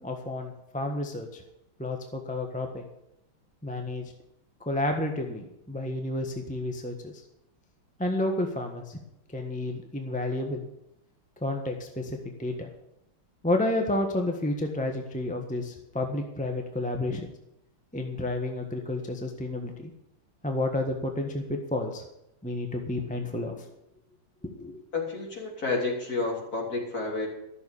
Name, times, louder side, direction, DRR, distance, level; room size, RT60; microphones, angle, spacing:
voice 1, 0.0-1.4 1.8-2.9 3.6-4.1 4.6-7.2 8.0-9.0 9.3-10.7 11.4-12.7 13.4-17.3 17.9-19.9 20.4-22.0 22.4-23.7 24.4-24.8, left 1 dB, 5° left, 3 dB, 0.9 m, -31 dB
voice 2, 24.9-27.3, left 3 dB, 40° left, -1 dB, 3.7 m, -30 dB
13.0 x 7.0 x 8.4 m, 0.84 s
omnidirectional pair, 2.4 m